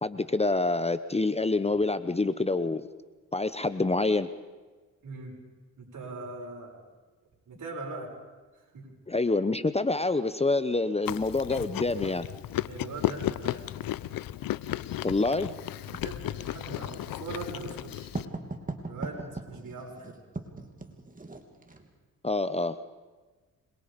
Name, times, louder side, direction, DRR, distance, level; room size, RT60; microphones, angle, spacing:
voice 1, 0.0-2.9 3.3-4.3 9.1-12.3 15.0-15.5 22.2-22.8, left 3 dB, 20° left, 13 dB, 0.9 m, -27 dB
voice 2, 5.0-5.4 5.8-6.8 7.5-8.1 8.5-8.9 12.6-13.6 15.8-18.1 18.9-20.2, right 3 dB, 60° right, -1 dB, 7.1 m, -41 dB
Chewing mastication, 11.1-18.3, left 13 dB, 80° left, 0.7 m, -34 dB
Writing, 15.9-21.9, right 3 dB, 25° right, 3.1 m, -40 dB
27.0 x 22.5 x 5.3 m, 1.3 s
cardioid pair, 70°, 34 cm